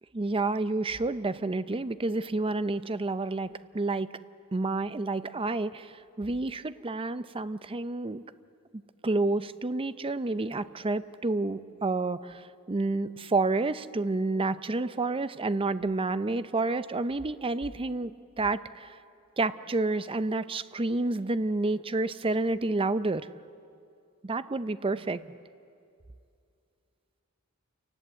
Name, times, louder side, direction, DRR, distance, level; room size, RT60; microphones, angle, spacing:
voice 1, 0.1-4.1 4.5-8.2 9.0-18.9 19.4-23.3 24.2-25.3, right 2 dB, 25° right, 13 dB, 0.6 m, -29 dB
28.5 x 18.5 x 8.2 m, 2.5 s
head